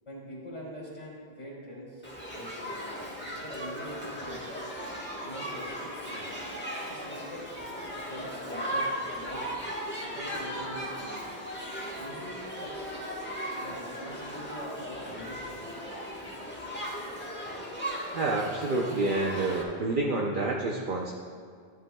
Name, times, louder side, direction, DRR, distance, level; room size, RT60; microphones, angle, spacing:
voice 1, 0.1-2.1 2.3-2.8 3.3-4.5 5.2-6.3 6.8-7.4 8.0-9.5 10.0-11.3 12.0-12.8 13.6-15.8, equal, 40° left, -6 dB, 3.0 m, -44 dB
Shout / Human group actions, 2.0-19.6, equal, 10° left, 1.3 m, -37 dB
voice 2, 18.1-21.1, right 2 dB, 55° right, -1 dB, 0.8 m, -28 dB
13.5 x 11.0 x 2.3 m, 2.1 s
omnidirectional pair, 1.1 m